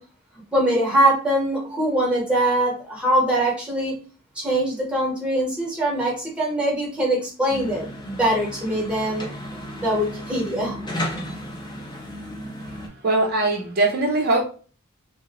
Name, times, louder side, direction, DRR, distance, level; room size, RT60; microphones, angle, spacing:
voice 1, 0.5-4.0 4.4-9.3 9.8-10.8, right 1 dB, 5° right, -2 dB, 0.9 m, -22 dB
sound 1, 7.5-12.9, equal, 20° left, 0.5 m, -34 dB
voice 2, 13.0-14.4, right 2 dB, 50° right, 0 dB, 0.5 m, -21 dB
2.6 x 2.0 x 2.8 m, 0.38 s
head